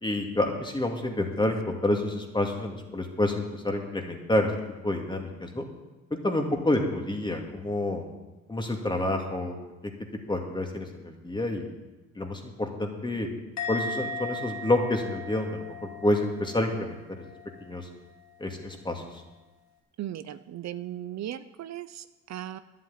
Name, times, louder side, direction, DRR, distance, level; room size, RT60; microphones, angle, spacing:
voice 1, 0.0-4.5 4.8-5.6 6.1-8.0 8.5-9.6 10.3-11.7 12.2-13.3 13.7-17.2 17.6-17.9 18.4-19.0, left 1 dB, 15° left, 3 dB, 2.3 m, -28 dB
Musical instrument, 13.6-17.0 17.2-17.6, left 2 dB, 65° left, 2.7 m, -37 dB
voice 2, 20.0-22.6, right 12 dB, 65° right, 13 dB, 0.6 m, -37 dB
11.0 x 7.8 x 9.4 m, 1.1 s
cardioid pair, 90°, 30 cm